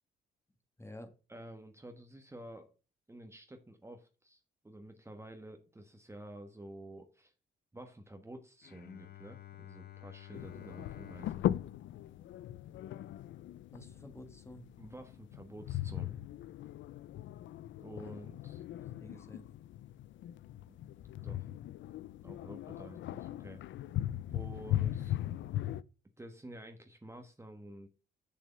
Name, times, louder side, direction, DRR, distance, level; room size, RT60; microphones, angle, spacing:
voice 1, 0.8-1.1 13.7-14.6 17.9-18.4 18.7-19.5, left 1 dB, 15° left, 1.7 m, -51 dB
voice 2, 1.3-2.7 3.1-7.3 7.7-11.4 14.8-16.2 17.8-18.6 20.7-20.8 21.2-21.5 22.2-23.6 24.3-25.2 26.2-27.9, right 1 dB, 15° right, 1.3 m, -50 dB
Bowed string instrument, 8.6-13.9, left 13 dB, 55° left, 0.9 m, -53 dB
sound 1, 10.3-25.8, left 13 dB, 70° left, 0.5 m, -39 dB
7.1 x 6.5 x 5.4 m
cardioid pair, 90°, 20 cm